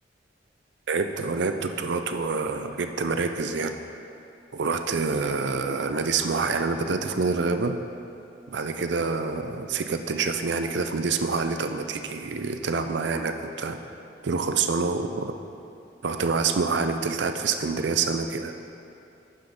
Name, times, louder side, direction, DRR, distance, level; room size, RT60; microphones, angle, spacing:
voice 1, 0.9-3.8 4.5-7.8 8.5-13.8 14.2-15.3 16.0-18.5, right 4 dB, 65° right, 7 dB, 0.5 m, -27 dB
11.5 x 5.1 x 4.0 m, 2.7 s
head